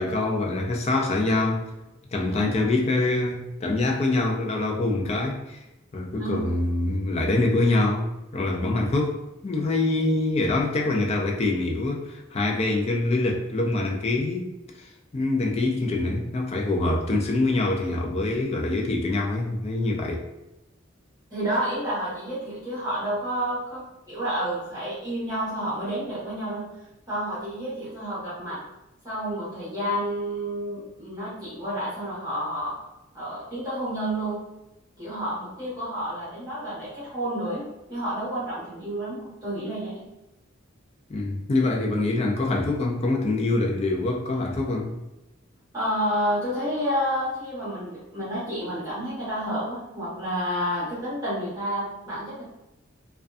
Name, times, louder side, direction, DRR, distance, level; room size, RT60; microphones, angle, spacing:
voice 1, 0.0-1.6 2.1-5.6 5.9-14.5 14.8-14.9 15.1-20.2 41.1-44.9, left 2 dB, 30° left, 1 dB, 0.4 m, -25 dB
voice 2, 21.3-26.7 27.1-28.6 29.0-32.7 33.1-34.4 35.0-40.1 45.7-52.4, equal, 20° right, -11 dB, 1.0 m, -30 dB
2.5 x 2.3 x 2.3 m, 0.93 s
head